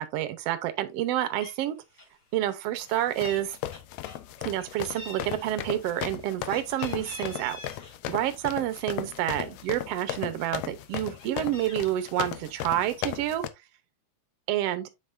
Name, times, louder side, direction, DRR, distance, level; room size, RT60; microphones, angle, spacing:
voice 1, 0.0-1.8 2.3-3.6 4.4-7.6 8.1-13.4 14.5-14.9, right 13 dB, 70° right, 1.7 m, -29 dB
Meow, 1.0-1.1 1.4-1.7 1.9-2.2 2.5-3.4 3.7-4.6 5.0-7.9 8.3-9.5 9.9-10.0 10.3-11.9, left 2 dB, 35° left, 2.7 m, -46 dB
sound 1, 2.9-13.5, left 12 dB, 80° left, 1.9 m, -36 dB
7.8 x 5.8 x 2.5 m
omnidirectional pair, 3.4 m